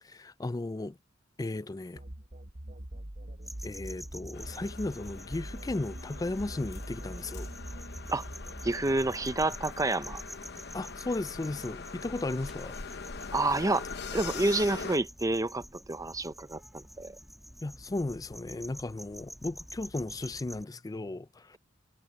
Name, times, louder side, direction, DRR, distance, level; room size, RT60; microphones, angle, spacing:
voice 1, 0.0-1.0 1.4-2.0 3.6-7.5 10.7-12.8 17.6-21.6, left 2 dB, 20° left, 0.4 m, -35 dB
sound 1, 2.0-9.6, right 1 dB, 40° right, 1.2 m, -44 dB
sound 2, 3.4-20.6, equal, ahead, 2.1 m, -49 dB
sound 3, 4.3-15.0, left 4 dB, 60° left, 1.0 m, -42 dB
voice 2, 8.6-10.2 13.3-13.8 14.1-17.2, right 2 dB, 15° right, 0.6 m, -29 dB
head